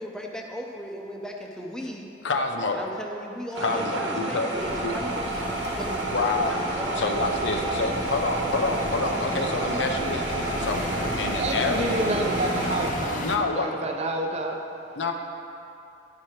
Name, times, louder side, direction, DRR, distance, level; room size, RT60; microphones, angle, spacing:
voice 1, 0.0-2.0 2.7-5.3 5.7-6.1 6.4-7.2 7.5-7.8, equal, 5° left, 0 dB, 0.6 m, -37 dB
voice 2, 2.2-2.8 3.6-4.5 4.8-4.9 6.1-6.6 7.0-10.8 11.2-11.9 13.2-13.7 15.0-15.1, left 3 dB, 85° left, 4 dB, 0.6 m, -27 dB
sound 1, 3.5-12.9, right 2 dB, 85° right, 1.0 m, -29 dB
sound 2, 4.5-13.4, left 2 dB, 45° left, 0.6 m, -35 dB
voice 3, 11.3-14.6, right 2 dB, 35° right, 2 dB, 0.6 m, -29 dB
9.3 x 4.9 x 4.3 m, 2.7 s
head